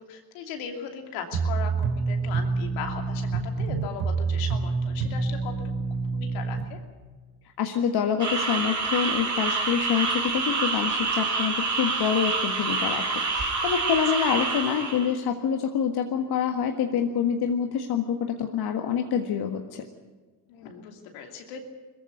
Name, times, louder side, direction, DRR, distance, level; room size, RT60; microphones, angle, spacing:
voice 1, 0.0-5.7 6.1-6.8 20.5-21.6, left 7 dB, 70° left, 4 dB, 2.9 m, -38 dB
sound 1, 1.3-6.6, right 4 dB, 65° right, 3.0 m, -27 dB
voice 2, 7.6-19.8, left 8 dB, 50° left, 5 dB, 1.7 m, -26 dB
sound 2, 8.2-15.1, right 3 dB, 35° right, 4.3 m, -27 dB
21.5 x 14.5 x 9.7 m, 1.4 s
hypercardioid pair, 55°, 48 cm